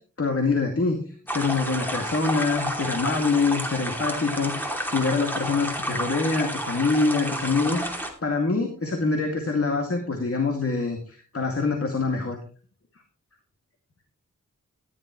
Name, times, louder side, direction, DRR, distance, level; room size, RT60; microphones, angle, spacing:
voice 1, 0.2-1.0 1.3-12.4, left 4 dB, 45° left, 2 dB, 2.3 m, -25 dB
sound 1, 1.3-8.1, equal, 5° left, 2.7 m, -31 dB
14.5 x 11.0 x 3.1 m, 0.40 s
wide cardioid pair, 80°, 31 cm